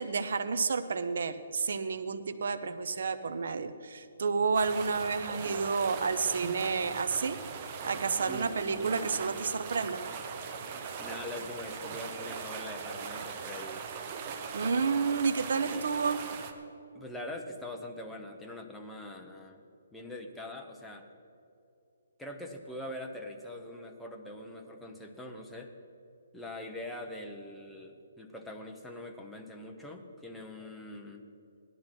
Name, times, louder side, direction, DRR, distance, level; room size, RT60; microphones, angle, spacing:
voice 1, 0.0-7.4 7.8-10.0 14.5-16.2, right 5 dB, 60° right, 10 dB, 0.9 m, -30 dB
sound 1, 4.5-16.5, right 6 dB, 25° right, 0.9 m, -40 dB
voice 2, 8.3-9.2 11.0-13.9 15.6-15.9 16.9-19.6 19.9-21.1 22.2-25.7 26.3-31.2, left 1 dB, 5° left, 1 dB, 0.8 m, -43 dB
17.0 x 12.0 x 4.5 m, 2.8 s
hypercardioid pair, 170°, 0 cm